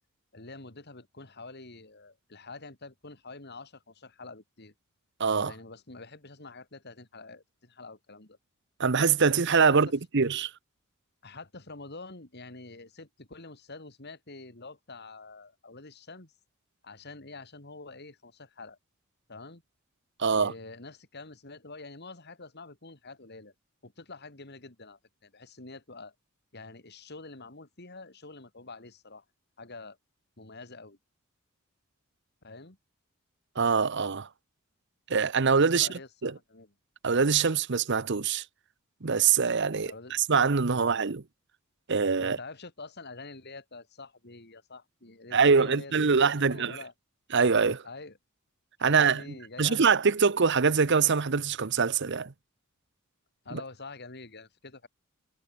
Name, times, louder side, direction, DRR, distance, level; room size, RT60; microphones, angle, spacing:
voice 1, 0.3-4.7 5.3-8.4 9.7-9.8 11.2-16.3 16.8-18.8 19.3-19.6 20.3-23.5 23.8-26.1 26.5-29.2 29.6-30.0 30.4-31.0 32.4-32.8 35.7-36.7 39.9-40.1 40.7-40.9 42.2-46.9 47.8-48.2 48.8-49.9 50.2-50.3 53.4-54.9, left 3 dB, 50° left, 3.1 m, -46 dB
voice 2, 5.2-5.5 8.8-9.9 10.1-10.5 20.2-20.5 33.6-34.3 35.1-35.9 36.2-36.3 37.0-38.4 39.0-41.2 41.9-42.4 45.3-46.8 47.3-47.8 48.8-49.2 49.6-52.3 53.5-53.6, right 5 dB, 55° right, 0.9 m, -24 dB
head